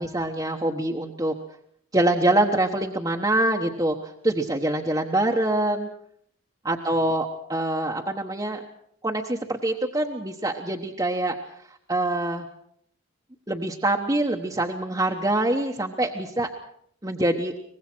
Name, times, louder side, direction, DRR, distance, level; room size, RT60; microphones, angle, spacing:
voice 1, 0.0-1.3 1.9-5.9 6.6-8.6 9.0-11.3 11.7-12.5 13.5-16.5 17.0-17.5, right 1 dB, 15° right, 0 dB, 1.2 m, -25 dB
24.0 x 20.5 x 6.2 m, 0.66 s
head